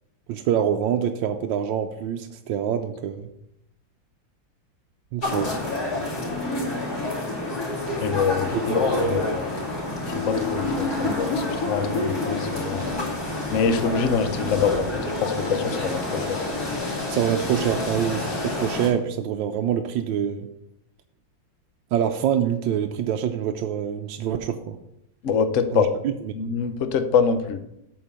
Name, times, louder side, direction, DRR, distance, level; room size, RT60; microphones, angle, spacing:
voice 1, 0.3-3.3 5.1-5.5 8.5-8.8 17.1-20.5 21.9-24.8 25.7-26.6, right 9 dB, 75° right, 5 dB, 1.3 m, -25 dB
sound 1, 5.2-18.9, left 2 dB, 50° left, 3.4 m, -28 dB
voice 2, 8.0-9.5 10.3-12.9 13.5-16.4 25.2-25.9 26.3-27.6, left 6 dB, 65° left, 8 dB, 0.7 m, -25 dB
8.6 x 4.5 x 6.8 m, 0.81 s
omnidirectional pair, 2.1 m